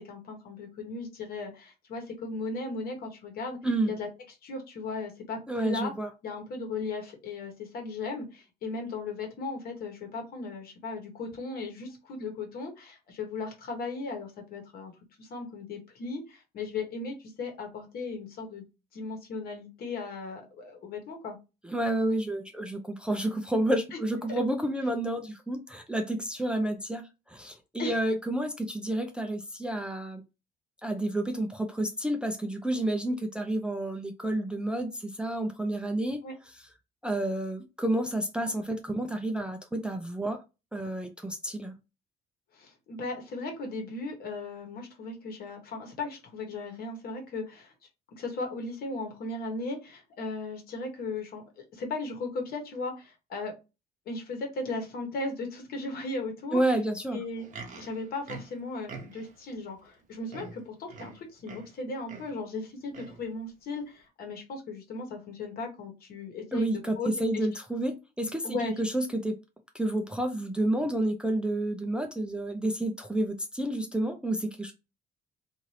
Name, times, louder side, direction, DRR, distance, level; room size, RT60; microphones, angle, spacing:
voice 1, 0.0-3.6 3.9-4.1 4.4-5.9 6.2-14.9 15.2-18.6 18.9-21.4 24.3-24.4 27.8-28.0 36.2-36.3 42.5-47.7 48.2-53.5 54.1-56.6 57.1-57.4 57.8-66.7 67.0-67.5 68.4-68.7, left 3 dB, 60° left, 3 dB, 1.1 m, -37 dB
voice 2, 5.5-6.1 21.6-30.2 30.8-36.2 37.0-40.4 40.7-41.8 56.5-57.2 66.5-69.4 69.7-74.7, right 1 dB, 5° right, 4 dB, 0.4 m, -30 dB
Livestock farm animals working animals, 57.2-59.4 60.0-60.1 60.3-61.8 62.1-62.4 62.9-63.3 63.9-64.0, right 4 dB, 50° right, 0.8 m, -45 dB
2.7 x 2.5 x 3.1 m, 0.27 s
cardioid pair, 110°, 17 cm